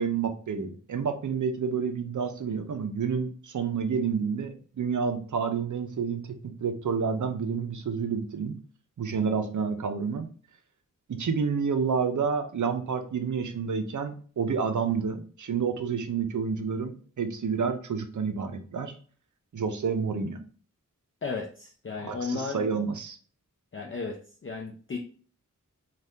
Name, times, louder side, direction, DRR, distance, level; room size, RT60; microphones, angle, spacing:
voice 1, 0.0-8.5 9.0-10.3 11.1-18.9 19.5-20.4 22.0-23.2, right 6 dB, 65° right, 7 dB, 0.5 m, -29 dB
voice 2, 21.2-22.6 23.7-24.2 24.4-25.0, left 4 dB, 40° left, 1 dB, 0.4 m, -34 dB
2.7 x 2.3 x 3.4 m, 0.43 s
wide cardioid pair, 70°, 32 cm